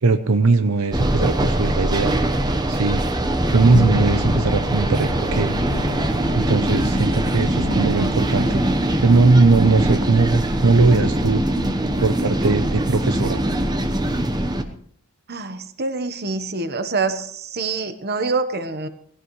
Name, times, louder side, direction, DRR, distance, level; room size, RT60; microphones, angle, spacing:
voice 1, 0.0-2.2 2.7-3.0 3.5-5.5 6.3-11.4 12.0-13.4, right 3 dB, 70° right, 10 dB, 0.7 m, -19 dB
sound 1, 0.9-14.6, right 1 dB, 20° right, 1.0 m, -22 dB
sound 2, 3.7-12.6, left 3 dB, 85° left, 0.8 m, -32 dB
voice 2, 15.3-18.9, right 3 dB, 45° right, 9 dB, 1.1 m, -26 dB
19.0 x 16.5 x 3.2 m, 0.65 s
head